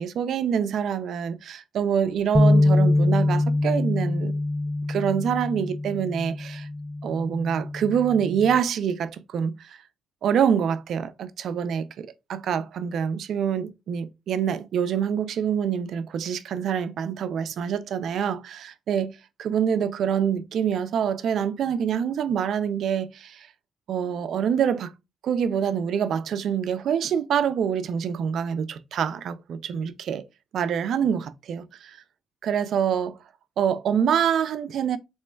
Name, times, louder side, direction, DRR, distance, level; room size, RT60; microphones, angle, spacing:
voice 1, 0.0-4.3 4.9-6.7 7.0-9.8 10.2-19.1 19.4-23.5 23.9-24.9 25.2-30.3 30.5-32.0 32.4-33.2 33.6-35.0, right 8 dB, 70° right, 0.4 m, -26 dB
sound 1, 2.3-8.6, left 2 dB, 5° left, 0.4 m, -24 dB
4.3 x 3.0 x 2.2 m
cardioid pair, 90°, 0 cm